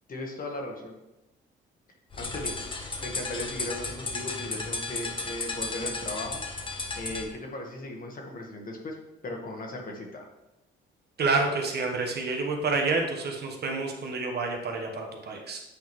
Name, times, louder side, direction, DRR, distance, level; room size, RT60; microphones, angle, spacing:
voice 1, 0.1-1.0 2.2-2.5 3.0-6.4 7.0-8.9 9.2-10.3, left 2 dB, 45° left, 1 dB, 1.4 m, -37 dB
sound 1, 2.1-7.3, left 3 dB, 25° left, 0.9 m, -34 dB
voice 2, 11.2-15.6, right 3 dB, 55° right, 2 dB, 1.1 m, -28 dB
8.3 x 3.7 x 3.1 m, 0.93 s
cardioid pair, 90°, 20 cm